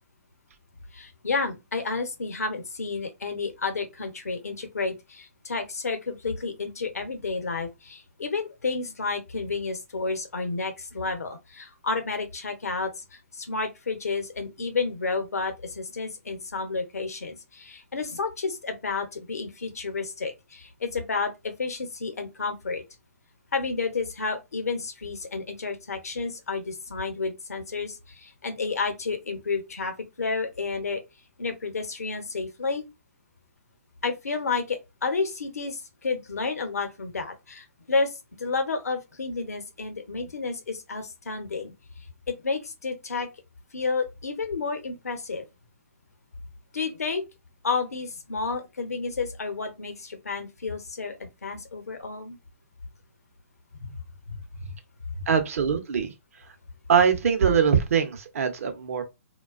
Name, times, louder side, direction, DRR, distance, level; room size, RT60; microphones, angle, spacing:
voice 1, 0.9-22.8 23.5-31.0 31.4-32.8 34.0-41.7 42.3-43.3 43.7-45.4 46.7-47.2 47.6-52.4 53.8-54.0 54.3-54.7 55.1-55.2, left 4 dB, 85° left, 0.7 m, -31 dB
voice 2, 55.3-56.1 56.9-59.0, right 7 dB, 65° right, 0.6 m, -22 dB
2.4 x 2.2 x 2.3 m
hypercardioid pair, 135°, 8 cm